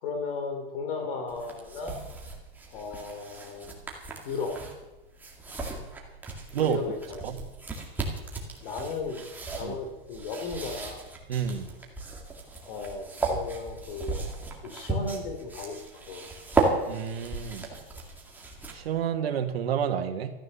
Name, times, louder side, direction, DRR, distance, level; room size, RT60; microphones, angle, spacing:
voice 1, 0.0-2.0 2.7-3.8 4.2-4.6 6.6-7.2 8.6-9.2 9.5-11.1 12.7-14.2 14.6-16.3, left 4 dB, 60° left, 6 dB, 3.3 m, -35 dB
sound 1, 1.3-19.0, right 3 dB, 5° right, 2.1 m, -35 dB
voice 2, 11.3-11.7 16.9-17.7 18.7-20.3, right 9 dB, 85° right, 5 dB, 1.9 m, -29 dB
13.0 x 13.0 x 6.9 m, 1.1 s
supercardioid pair, 155°, 30 cm